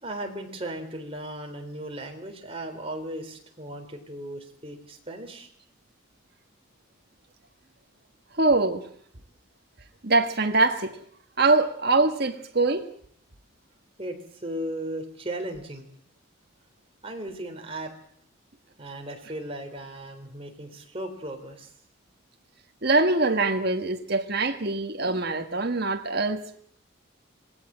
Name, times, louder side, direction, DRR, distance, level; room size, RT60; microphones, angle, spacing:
voice 1, 0.0-5.5 14.0-15.9 17.0-17.9 18.8-21.7, right 1 dB, 25° right, 3.9 m, -36 dB
voice 2, 8.3-8.9 10.0-11.0 11.4-12.9 22.8-26.6, right 3 dB, 50° right, 1.6 m, -23 dB
26.5 x 19.0 x 7.6 m
head